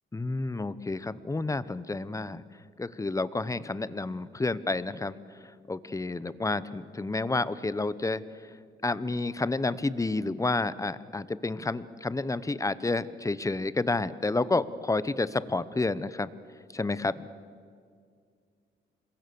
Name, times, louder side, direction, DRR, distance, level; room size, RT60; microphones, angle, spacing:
voice 1, 0.1-2.4 2.8-8.2 8.8-16.3 16.7-17.3, left 3 dB, 15° left, 16 dB, 0.9 m, -30 dB
27.0 x 22.0 x 7.1 m, 2.2 s
cardioid pair, 90°, 20 cm